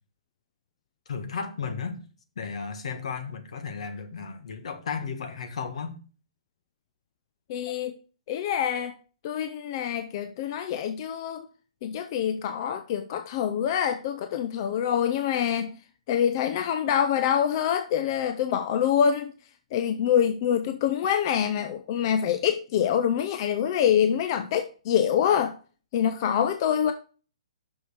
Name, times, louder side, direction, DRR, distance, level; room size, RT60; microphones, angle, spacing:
voice 1, 1.1-2.0 2.3-6.0, left 5 dB, 70° left, 1.5 m, -34 dB
voice 2, 7.5-8.0 8.3-9.0 9.2-11.5 11.8-15.7 16.1-19.3 19.7-25.5 25.9-26.9, left 9 dB, 40° left, 0.5 m, -25 dB
6.2 x 5.3 x 6.6 m
hypercardioid pair, 150°, 3 cm